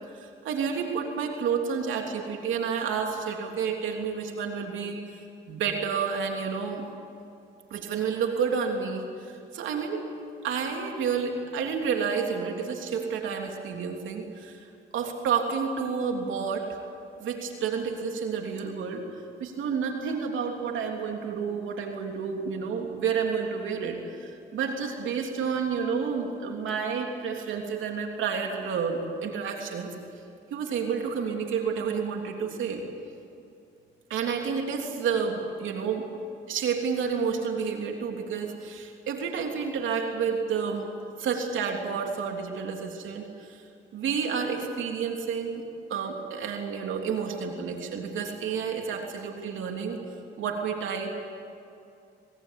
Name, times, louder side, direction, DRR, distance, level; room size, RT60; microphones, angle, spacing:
voice 1, 0.2-5.0 5.5-6.8 7.7-10.0 10.4-14.7 14.9-16.8 17.2-19.0 19.4-30.0 30.5-32.8 34.1-36.1 36.5-40.9 41.2-43.6 43.9-45.6 45.9-50.0 50.4-51.1, right 6 dB, 80° right, 2 dB, 3.2 m, -30 dB
26.5 x 21.5 x 8.4 m, 2.6 s
cardioid pair, 90°, 20 cm